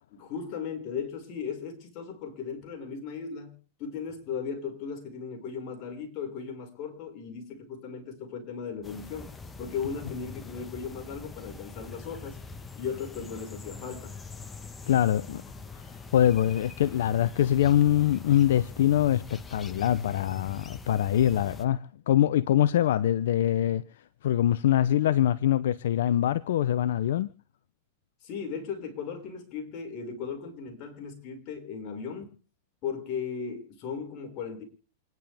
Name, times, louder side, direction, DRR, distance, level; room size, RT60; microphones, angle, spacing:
voice 1, 0.1-12.4 12.7-14.1 28.2-32.3 32.8-34.6, left 6 dB, 45° left, 5.7 m, -37 dB
sound 1, 8.8-21.6, left 4 dB, 15° left, 1.3 m, -43 dB
voice 2, 14.9-15.4 16.1-23.8 24.2-27.3, left 11 dB, 75° left, 0.7 m, -24 dB
28.0 x 10.5 x 3.5 m
hypercardioid pair, 125°, 0 cm